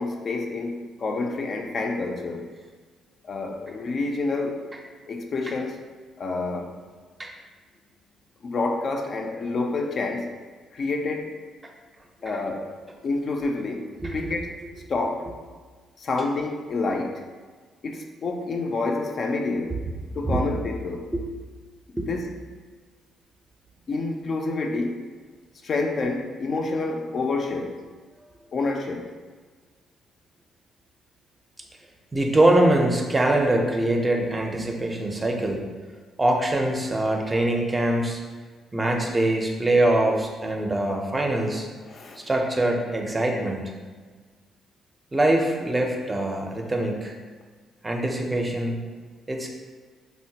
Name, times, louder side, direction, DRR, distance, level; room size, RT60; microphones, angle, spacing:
voice 1, 0.0-2.5 3.2-4.7 5.1-5.8 6.2-6.8 8.4-10.3 10.7-11.3 12.2-12.7 13.0-14.6 14.9-15.3 16.0-17.2 17.8-19.8 20.1-21.1 22.1-22.3 23.9-25.0 25.6-27.8 28.5-29.1 41.9-42.3, left 3 dB, 50° left, 2 dB, 0.3 m, -28 dB
voice 2, 32.1-35.6 36.2-38.2 38.7-41.7 42.3-43.6 45.1-47.1 47.8-48.8 49.3-49.5, right 1 dB, 20° right, 1 dB, 0.5 m, -23 dB
3.7 x 2.1 x 2.7 m, 1.5 s
cardioid pair, 90°, 0 cm